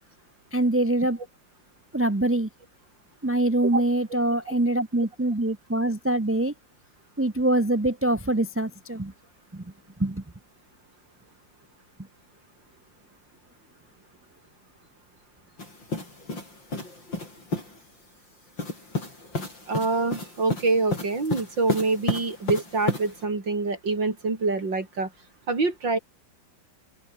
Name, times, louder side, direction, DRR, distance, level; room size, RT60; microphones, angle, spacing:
voice 1, 0.5-1.2 1.9-2.5 3.2-6.5 7.2-9.1 9.5-9.6 10.0-10.2, right 1 dB, 15° right, 0.4 m, -24 dB
sound 1, 15.6-17.8 18.6-23.2, left 2 dB, 75° left, 8.9 m, -32 dB
voice 2, 19.7-25.1 25.5-26.0, right 3 dB, 70° right, 5.0 m, -25 dB
open air
omnidirectional pair, 2.1 m